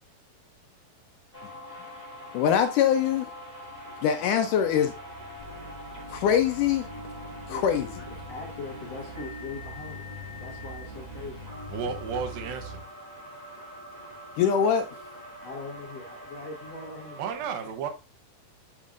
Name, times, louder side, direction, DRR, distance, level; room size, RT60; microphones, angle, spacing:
sound 1, 1.3-17.3, left 1 dB, 15° right, 2.6 m, -44 dB
voice 1, 2.3-3.3 4.0-4.9 6.1-6.9 7.5-7.9 14.4-14.9, left 8 dB, 75° left, 2.0 m, -23 dB
sound 2, 3.2-12.8, right 1 dB, 50° right, 4.2 m, -46 dB
sound 3, 5.4-12.5, right 1 dB, 20° left, 0.8 m, -46 dB
voice 2, 7.5-11.4 11.8-11.9 12.4-12.6 15.4-17.2, left 3 dB, 55° left, 2.3 m, -41 dB
voice 3, 11.7-12.8 17.2-17.9, right 6 dB, 85° right, 2.8 m, -32 dB
7.4 x 7.1 x 2.5 m
omnidirectional pair, 4.0 m